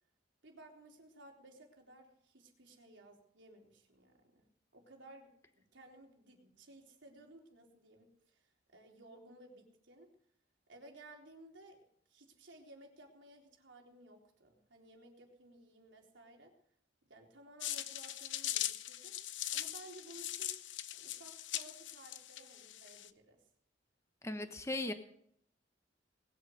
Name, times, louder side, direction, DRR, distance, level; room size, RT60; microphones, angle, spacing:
voice 1, 0.4-4.5 4.7-10.1 10.7-11.8 12.1-16.5 17.0-19.2 19.5-20.6 21.0-23.4 24.3-24.4, right 1 dB, 80° right, 1 dB, 3.8 m, -57 dB
sound 1, 17.6-23.1, left 12 dB, 80° left, 0.8 m, -41 dB
voice 2, 24.2-24.9, left 2 dB, 15° left, 7 dB, 1.1 m, -37 dB
20.0 x 8.2 x 8.0 m, 0.68 s
head